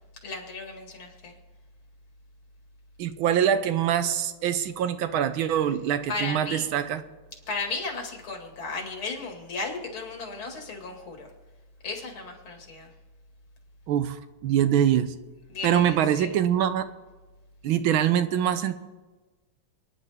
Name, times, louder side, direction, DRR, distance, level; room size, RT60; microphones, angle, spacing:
voice 1, 0.2-1.4 6.1-6.7 7.5-11.3 11.8-12.9 15.5-16.4, left 3 dB, 85° left, 2 dB, 3.0 m, -35 dB
voice 2, 3.0-7.0 13.9-14.2 14.4-15.1 15.6-16.9 17.6-18.7, right 9 dB, 85° right, 11 dB, 1.6 m, -24 dB
28.0 x 9.9 x 3.6 m, 1.2 s
omnidirectional pair, 2.2 m